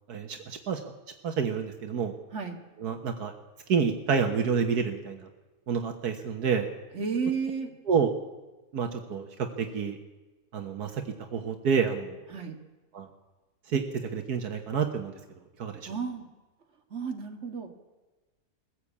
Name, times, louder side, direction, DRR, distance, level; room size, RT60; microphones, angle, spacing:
voice 1, 0.1-0.8 1.2-2.1 2.8-3.3 3.7-5.3 5.7-6.7 7.9-8.1 8.7-9.3 9.6-10.0 10.5-11.0 11.3-12.2 12.9-13.1 13.7-15.2 15.6-15.9, right 6 dB, 80° right, 5 dB, 1.8 m, -28 dB
voice 2, 6.9-7.7 12.3-12.6 15.9-16.3 16.9-17.7, right 5 dB, 45° right, 3 dB, 2.3 m, -32 dB
21.0 x 15.0 x 8.5 m, 1.2 s
omnidirectional pair, 1.7 m